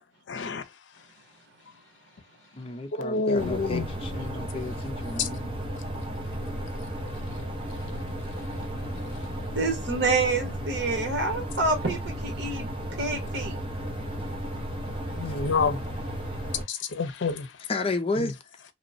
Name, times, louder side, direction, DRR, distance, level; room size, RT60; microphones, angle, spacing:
voice 1, 0.3-0.8 2.9-3.9 5.2-5.3 15.1-16.1 16.4-17.7 18.2-18.3, left 4 dB, 85° left, 0.5 m, -29 dB
voice 2, 2.5-5.5 15.3-15.4 17.7-18.3, left 3 dB, 30° left, 0.4 m, -32 dB
sound 1, 3.4-16.6, equal, 30° right, 0.6 m, -34 dB
voice 3, 9.5-13.6, right 3 dB, 75° right, 1.1 m, -28 dB
2.9 x 2.1 x 2.5 m
head